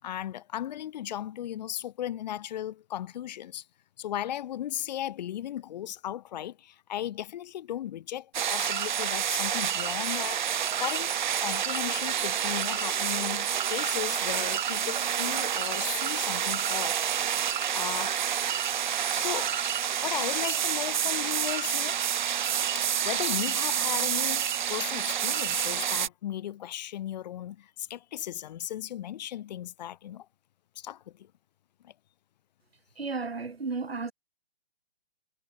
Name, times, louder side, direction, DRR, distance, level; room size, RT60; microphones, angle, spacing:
voice 1, 0.0-3.6 4.0-11.1 11.4-17.0 17.7-18.2 19.1-19.5 20.0-22.0 23.0-30.3 30.8-31.3 31.8-31.9, left 11 dB, 45° left, 6.4 m, -36 dB
sound 1, 8.3-26.1, right 9 dB, 50° right, 0.8 m, -28 dB
voice 2, 33.0-34.1, right 4 dB, 75° right, 4.6 m, -33 dB
figure-of-eight pair, 130°, 31 cm